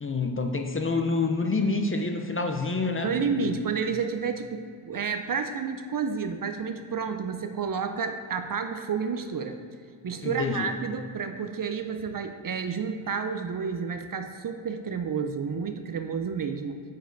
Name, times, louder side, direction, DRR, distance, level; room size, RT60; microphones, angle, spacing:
voice 1, 0.0-3.6 10.2-10.7, left 3 dB, 25° left, 4 dB, 0.6 m, -28 dB
voice 2, 3.0-9.6 10.0-16.8, right 5 dB, 45° right, 7 dB, 0.5 m, -30 dB
8.8 x 5.2 x 3.9 m, 2.2 s
wide cardioid pair, 115°, 49 cm